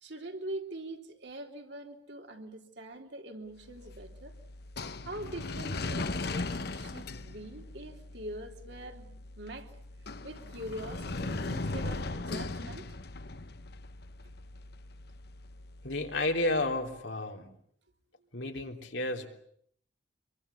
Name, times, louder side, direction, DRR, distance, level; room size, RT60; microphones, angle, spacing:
voice 1, 0.0-4.3 5.1-9.1 9.4-9.7 10.2-12.9, right 1 dB, 65° right, 3 dB, 3.5 m, -43 dB
sound 1, 3.6-16.7, left 2 dB, 60° left, 1.1 m, -39 dB
voice 2, 15.8-17.4 18.3-19.3, left 2 dB, 85° left, 3 dB, 3.4 m, -31 dB
26.5 x 23.0 x 8.4 m, 0.68 s
head